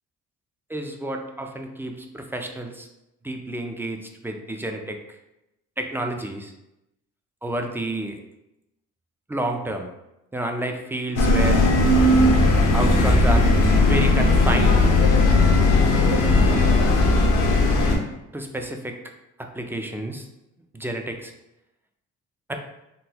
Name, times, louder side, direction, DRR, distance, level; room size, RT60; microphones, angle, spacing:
voice 1, 0.7-2.9 3.2-5.0 5.8-6.5 7.4-8.2 9.3-9.9 10.3-11.6 12.7-13.5 13.8-15.0 18.3-18.9 19.4-20.3 20.7-21.3 22.5-22.6, right 1 dB, 10° right, 3 dB, 0.3 m, -30 dB
sound 1, 11.2-18.0, left 2 dB, 85° left, 0.7 m, -17 dB
3.7 x 2.2 x 2.8 m, 0.90 s
cardioid pair, 90°, 30 cm